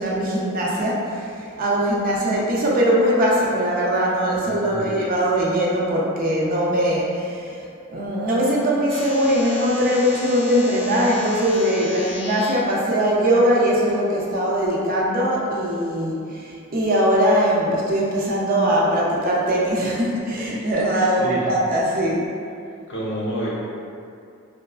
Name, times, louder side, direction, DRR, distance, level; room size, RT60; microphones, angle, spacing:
voice 1, 0.0-7.6 7.9-22.3, equal, 40° right, -4 dB, 0.4 m, -21 dB
voice 2, 4.3-4.9 21.1-21.5 22.9-23.5, right 1 dB, 55° left, -7 dB, 0.7 m, -29 dB
sound 1, 8.9-12.5, left 1 dB, 25° left, 0.3 m, -35 dB
2.8 x 2.3 x 2.3 m, 2.4 s
head